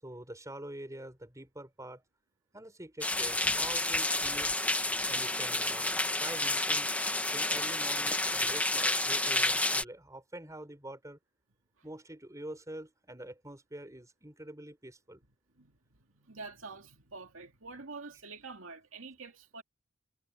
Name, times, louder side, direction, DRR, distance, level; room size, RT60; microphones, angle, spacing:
voice 1, 0.0-2.0 2.5-4.5 5.1-6.9 7.3-11.2 11.8-15.2, right 1 dB, 15° right, 6.2 m, -46 dB
sound 1, 3.0-9.8, left 2 dB, 5° left, 1.5 m, -30 dB
voice 2, 16.2-19.6, right 4 dB, 80° right, 2.3 m, -46 dB
head